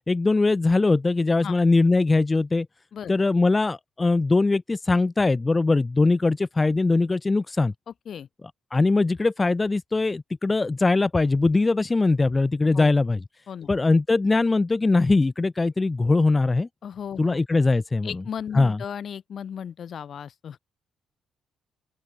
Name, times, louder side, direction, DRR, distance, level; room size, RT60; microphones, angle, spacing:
voice 1, 0.1-2.7 3.1-7.7 8.7-13.2 13.7-16.7 17.2-18.2 18.5-18.8, left 3 dB, 20° left, 0.5 m, -21 dB
voice 2, 16.8-17.4 18.0-20.6, left 8 dB, 55° left, 1.8 m, -35 dB
open air
cardioid pair, 90°, 0 cm